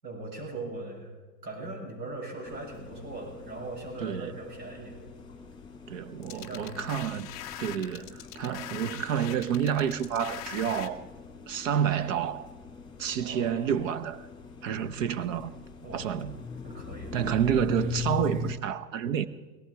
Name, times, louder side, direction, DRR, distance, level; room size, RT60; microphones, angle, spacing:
voice 1, 0.0-1.1 1.4-5.0 6.3-6.9 13.2-13.7 15.8-16.0 16.6-17.1, right 2 dB, 85° right, 7.0 m, -40 dB
sound 1, 2.5-18.6, left 5 dB, 10° left, 1.9 m, -42 dB
voice 2, 4.0-4.3 5.9-7.3 7.6-11.1 11.5-12.5 13.0-14.2 14.6-15.5 15.9-16.4 17.1-19.3, right 8 dB, 50° right, 0.9 m, -29 dB
sound 2, 6.2-10.9, left 12 dB, 25° left, 0.4 m, -42 dB
18.0 x 14.0 x 4.7 m
hypercardioid pair, 135°, 49 cm